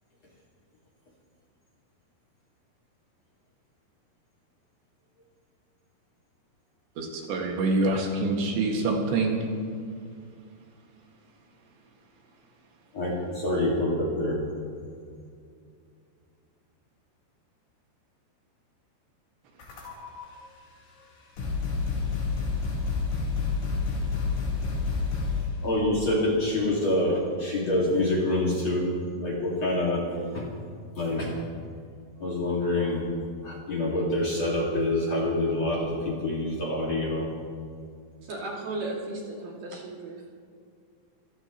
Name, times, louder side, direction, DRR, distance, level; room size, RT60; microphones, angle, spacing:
voice 1, 7.0-9.4, right 2 dB, 75° right, 0 dB, 4.1 m, -26 dB
voice 2, 12.9-14.4 25.6-28.9 29.2-30.0 30.3-30.5 31.0-31.4 32.2-33.0 33.4-37.3, left 1 dB, 45° left, -3 dB, 2.7 m, -26 dB
sound 1, 19.6-20.2 21.0-21.1 21.4-25.6, left 4 dB, 85° left, 6.8 m, -29 dB
voice 3, 38.2-40.3, right 2 dB, 50° right, -3 dB, 3.7 m, -35 dB
26.5 x 15.5 x 3.0 m, 2.2 s
omnidirectional pair, 5.1 m